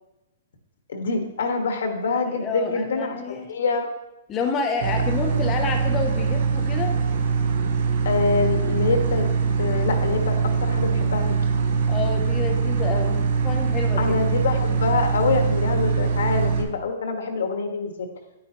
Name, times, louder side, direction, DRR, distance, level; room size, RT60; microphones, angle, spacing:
voice 1, 0.9-3.9 8.0-9.3 9.6-10.4 10.6-11.2 14.0-17.9, left 4 dB, 70° left, 5 dB, 1.4 m, -25 dB
voice 2, 2.2-3.5 4.3-6.9 11.9-14.1, left 4 dB, 15° left, 2 dB, 0.6 m, -29 dB
sound 1, 4.8-16.6, right 5 dB, 55° right, 1.0 m, -23 dB
10.5 x 8.5 x 2.9 m, 0.96 s
hypercardioid pair, 180°, 0 cm